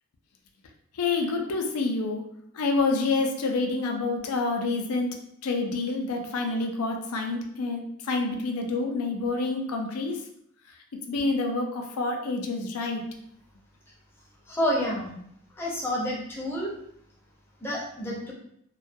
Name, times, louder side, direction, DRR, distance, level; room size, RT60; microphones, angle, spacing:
voice 1, 1.0-2.2 2.5-10.2 11.1-13.0, left 3 dB, 80° left, 3 dB, 0.4 m, -28 dB
voice 2, 14.5-15.1 15.6-16.7 17.6-18.3, equal, 10° left, -4 dB, 0.5 m, -29 dB
2.2 x 2.2 x 2.5 m, 0.71 s
head